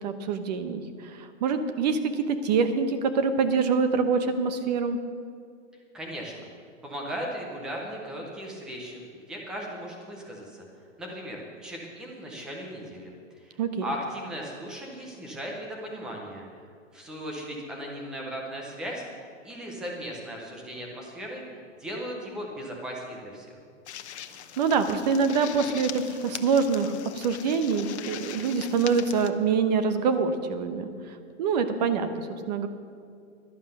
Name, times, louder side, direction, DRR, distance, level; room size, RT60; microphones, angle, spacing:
voice 1, 0.0-5.0 13.6-13.8 24.6-32.7, right 5 dB, 35° right, 9 dB, 0.9 m, -25 dB
voice 2, 5.9-6.3 6.8-10.6 11.0-16.4 16.9-19.0 19.4-23.5, equal, ahead, -1 dB, 0.5 m, -37 dB
sound 1, 23.9-29.3, left 10 dB, 60° left, 0.9 m, -41 dB
11.5 x 11.0 x 6.5 m, 2.3 s
hypercardioid pair, 165°, 38 cm